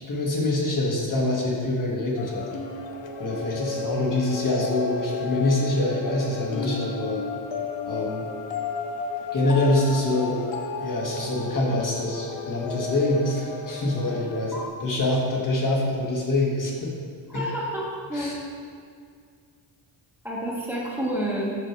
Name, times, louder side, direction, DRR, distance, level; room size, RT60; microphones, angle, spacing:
voice 1, 0.1-2.4 3.2-7.2 7.9-8.3 9.3-10.4 10.8-14.5 14.8-16.9 17.3-17.4 18.1-18.3, left 2 dB, 45° left, -3 dB, 1.5 m, -25 dB
sound 1, 2.2-14.7, left 4 dB, 70° left, 0.8 m, -33 dB
voice 2, 17.3-18.3 20.2-21.5, equal, 5° right, -6 dB, 1.2 m, -29 dB
6.3 x 4.4 x 5.9 m, 2.1 s
cardioid pair, 115°, 46 cm